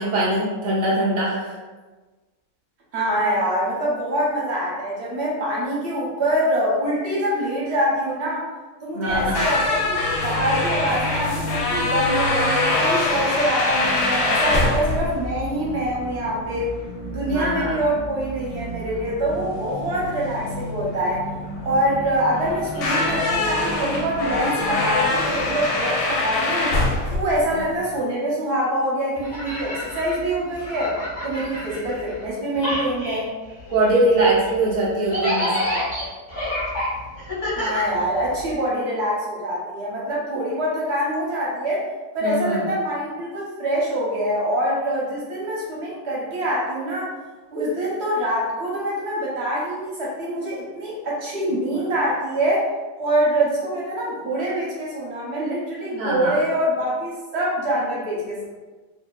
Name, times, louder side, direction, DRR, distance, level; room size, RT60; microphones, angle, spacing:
voice 1, 0.0-1.6 8.9-9.4 17.3-17.8 27.5-27.6 33.7-35.7 42.2-42.7 56.0-56.4, right 1 dB, 85° right, -6 dB, 0.4 m, -22 dB
voice 2, 2.9-8.4 8.8-16.7 17.1-21.2 21.6-26.7 27.1-31.0 31.2-33.3 37.6-41.8 42.1-47.1 47.5-52.7 53.0-58.5, right 1 dB, 50° right, -5 dB, 0.8 m, -25 dB
sound 1, 9.1-28.0, left 2 dB, 80° left, 1.2 m, -24 dB
sound 2, 13.7-25.6, equal, 5° right, 0.7 m, -35 dB
sound 3, 29.2-32.3 32.5-38.5, left 1 dB, 30° left, 1.0 m, -29 dB
2.7 x 2.7 x 2.3 m, 1.3 s
omnidirectional pair, 1.8 m